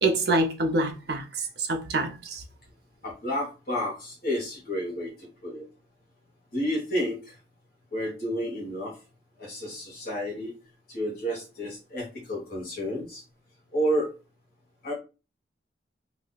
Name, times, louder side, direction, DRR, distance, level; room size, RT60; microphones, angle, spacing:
voice 1, 0.0-2.4, right 2 dB, 55° right, 0.6 m, -26 dB
voice 2, 3.0-5.6 6.5-7.3 7.9-9.0 9.4-10.5 10.9-13.2 13.7-14.1 14.8-14.9, equal, 50° left, 1.0 m, -30 dB
2.4 x 2.2 x 3.7 m
head